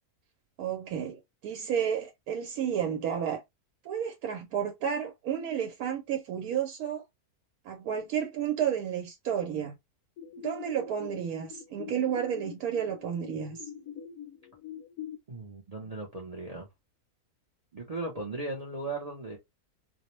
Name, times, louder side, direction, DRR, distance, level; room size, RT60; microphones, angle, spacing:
voice 1, 0.6-3.4 3.8-7.0 7.6-9.7 10.4-13.6, right 8 dB, 80° right, 1.1 m, -31 dB
sound 1, 10.2-15.2, left 9 dB, 75° left, 1.0 m, -44 dB
voice 2, 15.3-16.7 17.7-19.4, right 2 dB, 45° right, 0.5 m, -37 dB
2.5 x 2.0 x 2.9 m
omnidirectional pair, 1.6 m